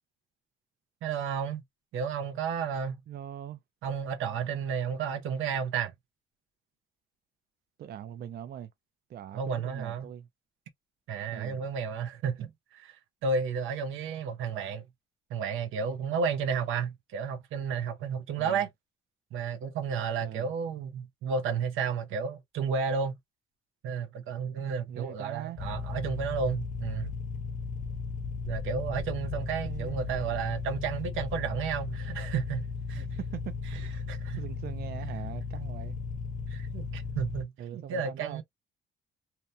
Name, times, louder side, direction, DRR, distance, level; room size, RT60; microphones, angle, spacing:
voice 1, 1.0-1.6 1.9-3.0 3.8-5.9 9.3-10.1 11.1-14.8 15.3-18.7 19.3-23.1 23.8-27.1 28.5-33.0 33.7-33.8 34.1-34.4 36.5-38.4, right 6 dB, 85° right, 0.7 m, -32 dB
voice 2, 3.1-3.6 7.8-8.7 9.1-10.3 11.3-11.6 18.4-18.7 20.2-20.5 24.9-25.6 29.6-30.1 33.2-33.6 34.4-36.0 37.6-38.4, right 10 dB, 55° right, 0.4 m, -41 dB
sound 1, 25.6-37.4, left 5 dB, 40° left, 0.6 m, -36 dB
2.8 x 2.2 x 2.4 m
cardioid pair, 90°, 20 cm